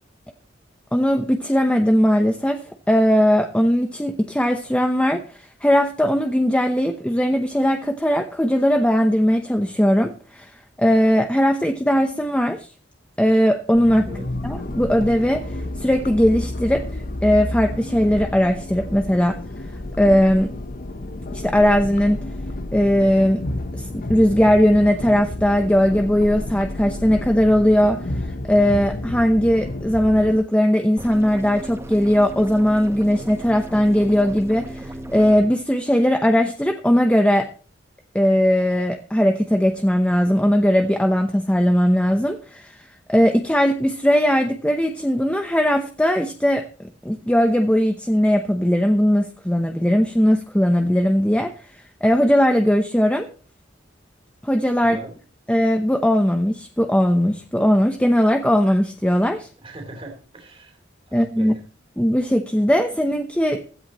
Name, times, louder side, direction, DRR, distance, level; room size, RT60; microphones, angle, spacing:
voice 1, 0.9-2.6 2.9-10.5 10.8-12.7 13.2-19.4 20.0-20.5 21.3-22.2 22.7-23.4 23.7-37.5 38.1-46.7 47.0-53.3 54.4-55.0 55.5-59.5 61.1-61.5 62.0-63.6, equal, 5° left, 5 dB, 0.9 m, -19 dB
sound 1, 13.7-30.4, left 1 dB, 50° left, 1.0 m, -31 dB
sound 2, 31.0-35.4, right 1 dB, 15° right, 1.3 m, -35 dB
voice 2, 54.8-55.1 59.6-60.8 61.1-61.6, right 1 dB, 30° right, 2 dB, 3.1 m, -39 dB
16.0 x 13.0 x 3.1 m, 0.40 s
head